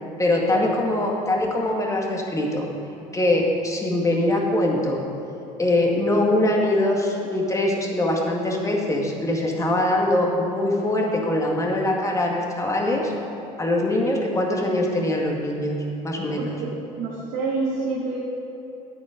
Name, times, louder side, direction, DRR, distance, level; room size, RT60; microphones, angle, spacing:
voice 1, 0.2-2.7 3.1-5.0 5.6-13.1 13.6-15.8 16.0-16.6, left 1 dB, 20° left, -1 dB, 2.1 m, -22 dB
voice 2, 16.4-18.2, right 3 dB, 80° right, -5 dB, 1.8 m, -28 dB
10.5 x 9.0 x 5.2 m, 2.9 s
supercardioid pair, 90°, 17 cm